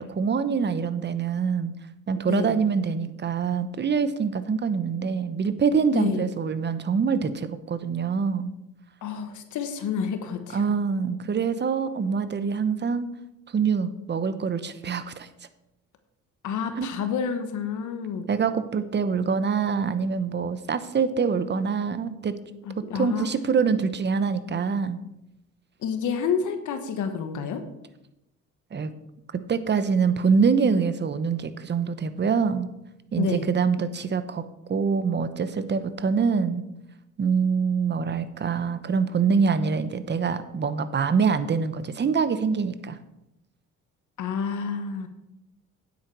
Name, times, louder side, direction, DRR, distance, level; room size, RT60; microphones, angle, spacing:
voice 1, 0.0-1.7 2.1-8.5 10.5-13.1 13.5-15.3 16.8-16.9 18.3-22.3 22.9-25.0 28.7-29.0 29.3-32.7 33.1-34.4 34.7-36.6 37.2-43.0, right 5 dB, 35° right, 12 dB, 0.9 m, -25 dB
voice 2, 2.3-2.6 5.9-6.3 9.0-10.6 16.4-18.3 22.6-23.3 25.8-27.6 33.2-33.5 44.2-45.1, left 6 dB, 80° left, 8 dB, 1.2 m, -29 dB
9.6 x 8.2 x 4.7 m, 0.89 s
cardioid pair, 90°, 30 cm